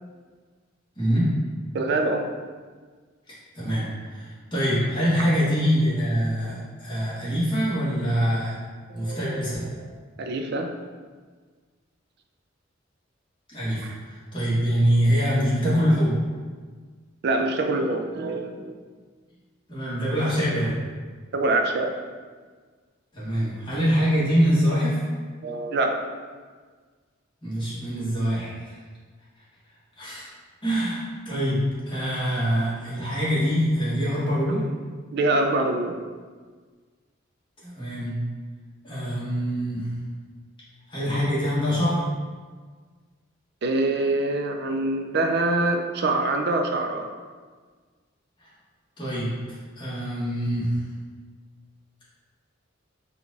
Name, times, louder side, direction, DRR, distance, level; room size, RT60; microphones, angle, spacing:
voice 1, 1.0-1.3 3.3-8.6 8.9-9.7 13.5-16.2 19.7-20.8 23.1-25.0 27.4-28.8 30.0-30.3 30.6-34.6 37.6-38.2 38.8-39.9 40.9-42.0 48.4-48.5 49.0-50.8, equal, 25° left, -9 dB, 1.4 m, -24 dB
voice 2, 1.7-2.3 8.9-9.4 9.7-9.9 10.2-10.7 13.8-14.0 17.2-18.8 21.3-22.0 25.4-26.0 35.1-36.0 43.6-47.1, right 2 dB, 55° right, 4 dB, 0.4 m, -25 dB
4.4 x 2.4 x 4.0 m, 1.5 s
head